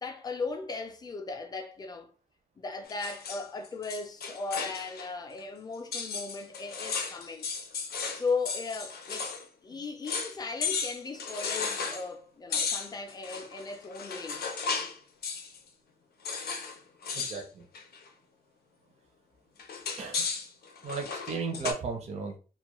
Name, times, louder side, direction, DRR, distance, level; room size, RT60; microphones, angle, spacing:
voice 1, 0.0-2.1 2.6-7.5 8.1-9.3 9.6-14.4, left 4 dB, 25° left, 0.4 m, -37 dB
sound 1, 2.9-5.1 5.4-5.5 5.9-9.4 9.7-9.8 10.1-10.4 10.6-12.1 12.5-15.0 15.2-15.6 16.2-16.8 17.0-17.4 17.7-18.1 19.6-21.7, left 5 dB, 80° left, 0.5 m, -35 dB
voice 2, 17.1-17.7 20.0-20.3 20.8-22.3, right 4 dB, 45° right, 0.5 m, -35 dB
2.3 x 2.1 x 2.9 m
wide cardioid pair, 170°, 16 cm